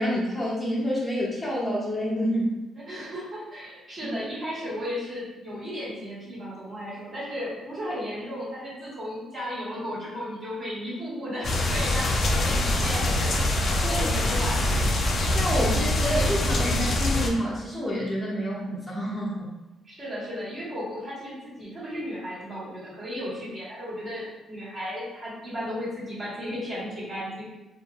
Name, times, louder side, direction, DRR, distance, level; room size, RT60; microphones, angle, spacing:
voice 1, 0.0-2.5 13.8-14.0 15.3-19.5, equal, 5° left, -7 dB, 0.7 m, -28 dB
voice 2, 2.7-14.9 19.8-27.5, equal, 45° right, -9 dB, 1.5 m, -35 dB
sound 1, 11.4-17.3, left 1 dB, 50° left, 0.4 m, -24 dB
2.8 x 2.5 x 2.4 m, 1.1 s
cardioid pair, 90°, 0 cm